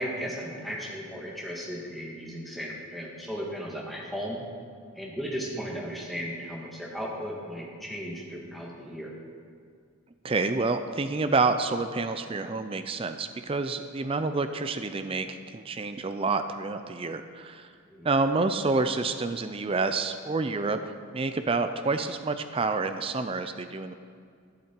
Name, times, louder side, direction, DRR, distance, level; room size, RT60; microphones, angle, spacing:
voice 1, 0.0-4.4 4.9-9.1 17.9-18.1, equal, ahead, -3 dB, 1.6 m, -36 dB
voice 2, 10.2-17.7 18.0-23.9, right 3 dB, 25° right, 9 dB, 0.4 m, -28 dB
11.5 x 11.5 x 4.5 m, 2.2 s
head